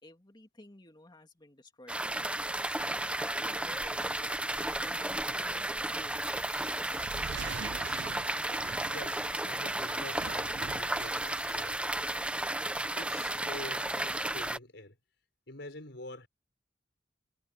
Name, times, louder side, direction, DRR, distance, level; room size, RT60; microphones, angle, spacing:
voice 1, 0.0-2.4 2.8-4.2 4.5-6.3, left 1 dB, 25° left, 2.4 m, -54 dB
sound 1, 1.9-14.6, right 1 dB, 5° right, 0.7 m, -33 dB
sound 2, 6.1-12.4, right 6 dB, 20° right, 4.2 m, -54 dB
sound 3, 6.9-9.5 10.0-11.1, right 6 dB, 65° right, 0.4 m, -43 dB
voice 2, 8.9-12.1 13.0-15.0 15.5-16.3, left 2 dB, 65° left, 6.1 m, -46 dB
head